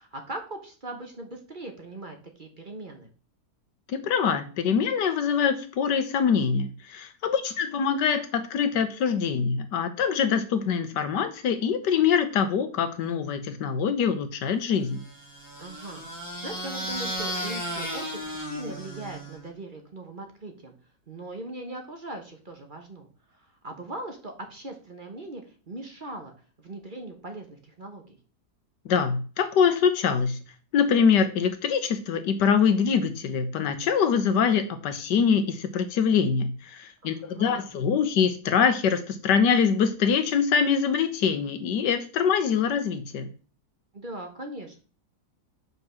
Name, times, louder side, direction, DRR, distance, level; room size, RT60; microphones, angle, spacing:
voice 1, 0.0-3.1 15.6-20.7 21.1-26.3 26.6-28.2 37.0-37.7 43.9-44.8, right 1 dB, 35° right, 4 dB, 1.2 m, -40 dB
voice 2, 3.9-15.0 28.8-30.4 30.7-43.3, left 6 dB, 90° left, 10 dB, 1.6 m, -24 dB
sound 1, 14.9-19.5, equal, 10° right, 3.7 m, -34 dB
5.5 x 5.4 x 6.2 m, 0.38 s
omnidirectional pair, 1.8 m